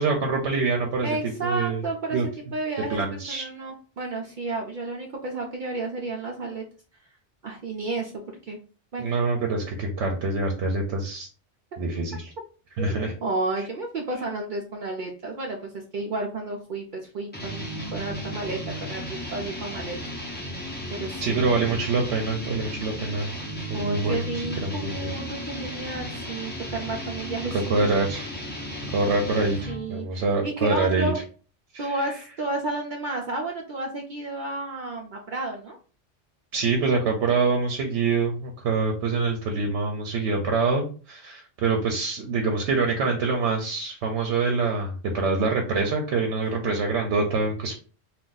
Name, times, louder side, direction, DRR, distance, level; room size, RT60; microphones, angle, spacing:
voice 1, 0.0-1.8 2.1-2.2 2.9-3.5 9.0-11.3 11.8-12.3 12.8-13.1 21.2-23.3 23.7-24.2 24.6-25.1 27.7-28.3 28.9-31.1 31.7-31.9 36.5-47.8, right 4 dB, 75° right, 2 dB, 0.9 m, -25 dB
voice 2, 1.0-2.2 2.5-6.6 7.4-8.6 8.9-9.0 12.8-20.0 20.9-21.8 23.7-27.6 29.7-31.2 31.8-35.8, right 2 dB, 60° right, 0 dB, 0.6 m, -32 dB
sound 1, 17.3-29.9, equal, 10° left, 0.5 m, -35 dB
2.5 x 2.3 x 3.7 m, 0.39 s
omnidirectional pair, 1.2 m